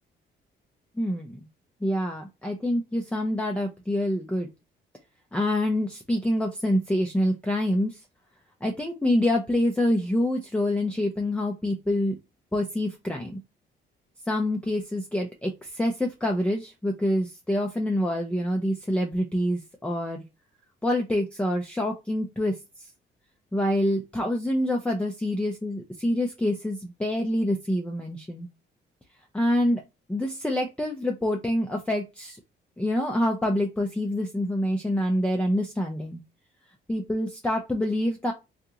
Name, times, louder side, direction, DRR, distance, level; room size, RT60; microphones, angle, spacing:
voice 1, 1.0-1.5 1.8-4.5 5.3-8.0 8.6-12.2 12.5-13.4 14.3-20.2 20.8-22.9 23.5-28.5 29.3-29.8 30.1-32.4 32.8-36.2 36.9-38.3, left 1 dB, 5° left, 1 dB, 0.5 m, -26 dB
3.5 x 2.5 x 2.8 m, 0.25 s
cardioid pair, 90°, 20 cm